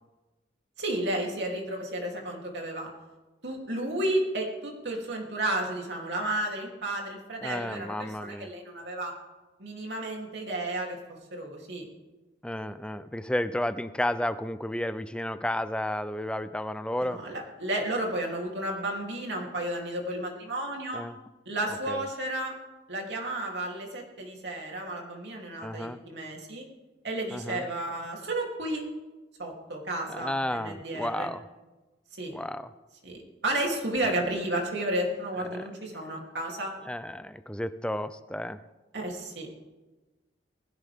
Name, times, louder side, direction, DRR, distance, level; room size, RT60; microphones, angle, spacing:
voice 1, 0.8-2.9 3.4-9.1 9.6-11.0 11.3-11.9 17.0-21.0 21.4-22.5 22.9-26.6 27.0-28.8 29.4-31.3 32.2-32.3 33.0-36.7 38.9-39.5, right 1 dB, 70° right, 0 dB, 3.3 m, -32 dB
voice 2, 7.4-8.5 12.4-17.2 20.9-21.2 21.9-22.1 25.6-26.0 27.3-27.7 30.1-31.4 32.3-32.7 34.0-34.1 35.5-35.6 36.9-38.6, left 1 dB, 5° left, 12 dB, 0.5 m, -32 dB
20.0 x 16.0 x 3.6 m, 1.2 s
head